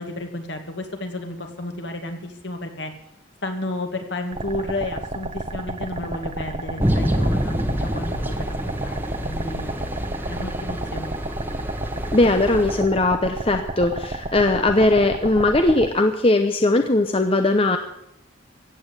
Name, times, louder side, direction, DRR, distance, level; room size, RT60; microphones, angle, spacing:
voice 1, 0.0-2.9 3.4-9.8 10.3-11.2, left 2 dB, 60° left, 5 dB, 2.2 m, -32 dB
sound 1, 4.3-15.9, right 2 dB, 30° right, 1.0 m, -31 dB
sound 2, 6.8-12.8, equal, 10° right, 1.3 m, -27 dB
voice 2, 12.1-17.8, left 2 dB, 30° left, 6 dB, 0.8 m, -19 dB
15.5 x 8.6 x 8.4 m, 0.78 s
head